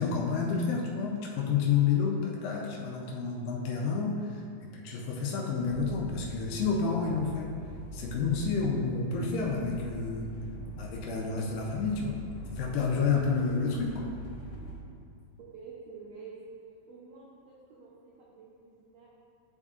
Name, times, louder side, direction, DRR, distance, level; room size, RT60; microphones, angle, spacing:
voice 1, 0.0-7.5 7.9-10.3 10.8-12.2 12.5-14.1, left 5 dB, 90° left, -2 dB, 1.9 m, -29 dB
sound 1, 5.6-14.8, right 1 dB, 70° left, 2.0 m, -43 dB
voice 2, 15.4-16.4 16.9-19.1, right 5 dB, 85° right, -5 dB, 1.8 m, -49 dB
9.8 x 4.4 x 2.4 m, 2.3 s
omnidirectional pair, 4.6 m